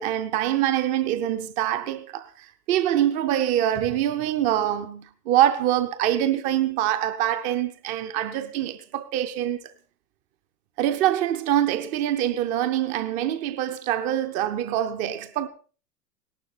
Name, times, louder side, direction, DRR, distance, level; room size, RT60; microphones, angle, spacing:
voice 1, 0.0-9.7 10.8-15.5, right 11 dB, 15° right, 0.6 m, -25 dB
17.5 x 12.0 x 4.3 m
figure-of-eight pair, 105°, 46 cm